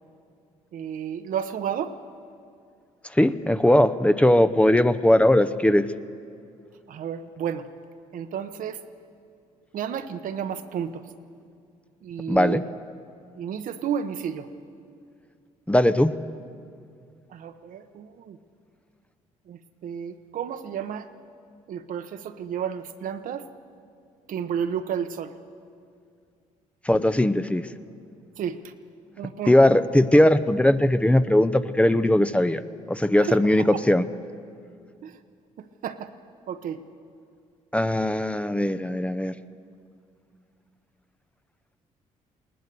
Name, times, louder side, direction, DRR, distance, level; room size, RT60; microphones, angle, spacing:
voice 1, 0.7-2.0 6.9-7.7 8.1-8.8 9.7-11.0 12.0-12.7 13.3-14.5 17.3-18.4 19.5-21.1 21.7-23.5 24.3-25.3 28.4-28.7 29.2-29.5 33.2-33.8 35.0-35.2 35.6-36.1 36.5-36.8, right 8 dB, 70° right, 9 dB, 1.1 m, -32 dB
voice 2, 3.1-5.8 12.3-12.6 15.7-16.1 26.8-27.7 29.5-32.6 32.9-34.0 37.7-39.3, left 1 dB, 10° left, 11 dB, 0.7 m, -19 dB
20.5 x 19.0 x 6.9 m, 2.3 s
supercardioid pair, 70°, 15 cm